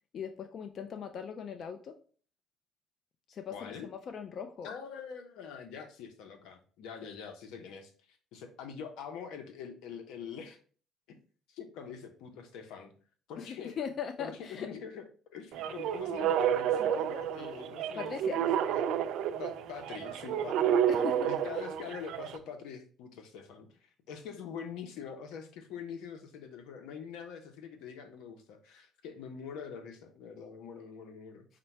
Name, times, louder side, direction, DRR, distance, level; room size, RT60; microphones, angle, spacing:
voice 1, 0.1-1.9 3.3-4.7 13.4-14.7 18.0-18.4 20.9-21.2, left 7 dB, 50° left, 7 dB, 0.4 m, -40 dB
voice 2, 3.5-3.9 4.6-7.9 8.3-10.6 11.1-11.2 11.5-12.9 13.3-13.8 14.2-15.0 15.3-18.9 19.4-31.5, left 6 dB, 85° left, 6 dB, 0.8 m, -44 dB
sound 1, 15.5-22.4, right 9 dB, 75° right, 0.4 m, -30 dB
5.0 x 2.2 x 4.4 m, 0.42 s
cardioid pair, 105°, 0 cm